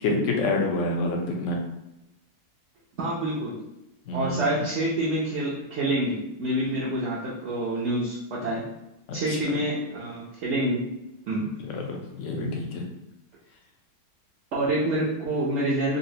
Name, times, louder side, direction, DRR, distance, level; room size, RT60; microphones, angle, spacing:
voice 1, 0.0-1.6 4.1-4.6 9.1-9.5 11.6-12.9, left 2 dB, 65° left, 1 dB, 0.8 m, -28 dB
voice 2, 3.0-3.6 4.1-8.7 9.1-10.8 11.3-11.5 14.5-16.0, right 1 dB, 60° right, -7 dB, 0.7 m, -27 dB
3.9 x 2.1 x 2.7 m, 0.90 s
omnidirectional pair, 1.7 m